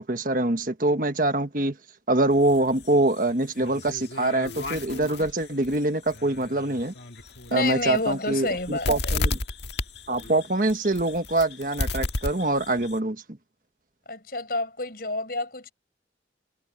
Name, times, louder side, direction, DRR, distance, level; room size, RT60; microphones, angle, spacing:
voice 1, 0.0-1.7 2.1-6.9 7.5-9.4 10.1-13.2, right 2 dB, 50° right, 1.5 m, -24 dB
sound 1, 2.3-13.0, left 2 dB, 75° left, 1.7 m, -34 dB
voice 2, 7.5-9.1 14.1-15.7, left 2 dB, 55° left, 6.7 m, -29 dB
head